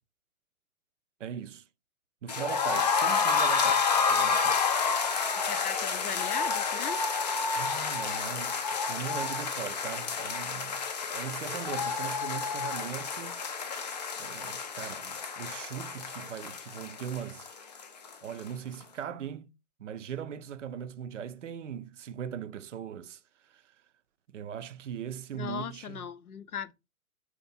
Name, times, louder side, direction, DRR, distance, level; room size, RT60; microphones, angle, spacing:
voice 1, 1.2-1.6 2.2-4.6 7.5-13.4 14.2-17.5 18.2-19.5 19.8-23.2 23.5-23.6 24.3-26.0, right 8 dB, 55° right, 0.5 m, -40 dB
sound 1, 2.3-18.1 18.4-18.5 18.8-18.9, left 5 dB, 30° left, 0.4 m, -30 dB
voice 2, 5.5-7.0 25.3-26.7, left 8 dB, 80° left, 0.6 m, -38 dB
4.2 x 2.5 x 4.1 m
figure-of-eight pair, 110°, 44 cm